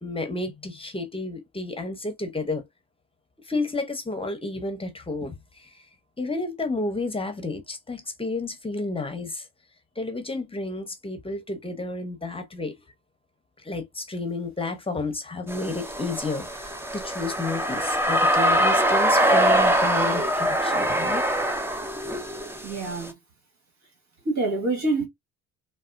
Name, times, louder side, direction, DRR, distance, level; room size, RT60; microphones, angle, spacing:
voice 1, 0.0-2.6 3.5-5.3 5.6-5.7 6.2-9.5 10.0-12.8 13.6-21.3, left 3 dB, 15° left, 0.9 m, -31 dB
sound 1, 15.5-23.1, right 1 dB, 5° right, 0.6 m, -23 dB
voice 2, 22.6-23.1 24.2-25.1, right 2 dB, 50° right, 1.6 m, -26 dB
4.1 x 2.0 x 2.5 m
supercardioid pair, 80°, 34 cm